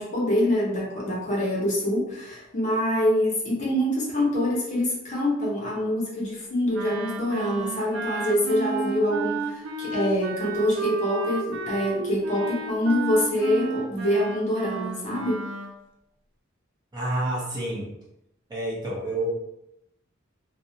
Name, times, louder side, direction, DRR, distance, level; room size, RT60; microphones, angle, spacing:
voice 1, 0.0-15.4, left 1 dB, 40° left, -4 dB, 0.7 m, -25 dB
Wind instrument woodwind instrument, 6.7-15.7, right 4 dB, 65° right, 0.3 m, -32 dB
voice 2, 16.9-17.9 18.5-19.3, right 1 dB, 20° right, -6 dB, 0.7 m, -29 dB
2.3 x 2.0 x 2.7 m, 0.84 s
head